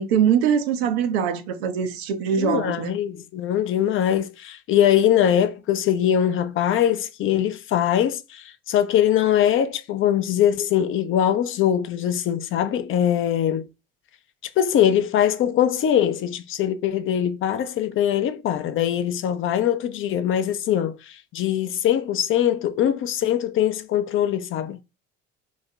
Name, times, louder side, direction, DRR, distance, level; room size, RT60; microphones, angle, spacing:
voice 1, 0.0-2.9, right 8 dB, 80° right, 0.5 m, -22 dB
voice 2, 2.4-13.7 14.6-24.8, left 10 dB, 45° left, 0.4 m, -22 dB
2.4 x 2.1 x 2.6 m
hypercardioid pair, 60°, 30 cm